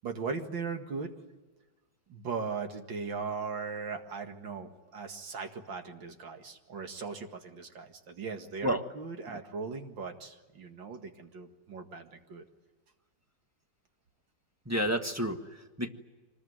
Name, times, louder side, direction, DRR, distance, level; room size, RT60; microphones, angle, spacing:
voice 1, 0.0-1.1 2.1-12.4, right 5 dB, 85° right, 5 dB, 2.6 m, -38 dB
voice 2, 14.6-15.9, equal, 10° right, 5 dB, 1.3 m, -31 dB
25.0 x 20.5 x 9.4 m, 1.3 s
omnidirectional pair, 2.0 m